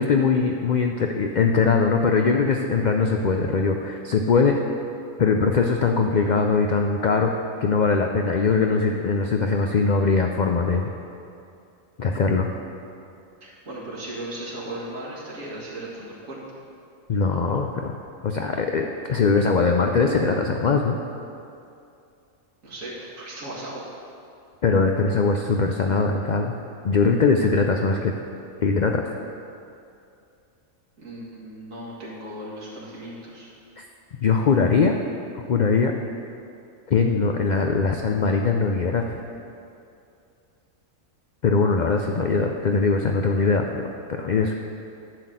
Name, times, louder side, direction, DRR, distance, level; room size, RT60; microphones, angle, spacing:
voice 1, 0.0-4.6 5.2-7.3 7.6-10.9 12.0-12.5 17.1-17.9 18.2-21.0 24.6-26.5 26.8-28.1 28.6-29.0 33.8-33.9 34.2-35.0 35.5-35.9 36.9-39.0 41.4-44.5, left 4 dB, 75° left, 3 dB, 0.4 m, -21 dB
voice 2, 13.4-16.4 22.6-23.9 31.0-33.5, right 1 dB, 75° right, -6 dB, 2.4 m, -36 dB
11.0 x 4.1 x 7.6 m, 2.6 s
omnidirectional pair, 1.4 m